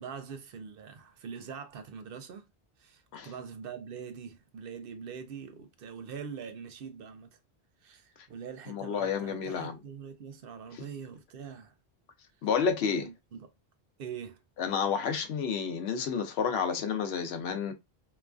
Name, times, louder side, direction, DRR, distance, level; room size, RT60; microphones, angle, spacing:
voice 1, 0.0-2.5 2.8-7.4 7.8-11.7 12.9-13.5 14.0-14.4, right 6 dB, 65° right, 0.7 m, -43 dB
voice 2, 8.7-9.8 12.4-13.1 14.6-17.7, left 6 dB, 90° left, 0.9 m, -30 dB
3.0 x 2.3 x 2.4 m
omnidirectional pair, 1.0 m